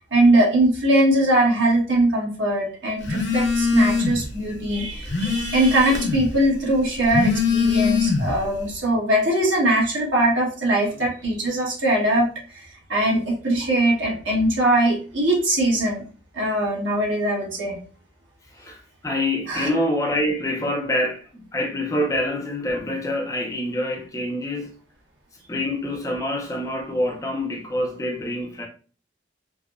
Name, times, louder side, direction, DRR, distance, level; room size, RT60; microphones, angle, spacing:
voice 1, 0.1-16.0 16.3-17.8 19.5-19.7, right 1 dB, 80° right, 1.2 m, -21 dB
Telephone, 3.0-4.3 4.7-6.3 7.0-8.5, left 5 dB, 75° left, 0.7 m, -22 dB
voice 2, 18.5-24.8 25.5-28.7, left 1 dB, 15° left, 0.4 m, -26 dB
3.3 x 2.1 x 2.4 m
head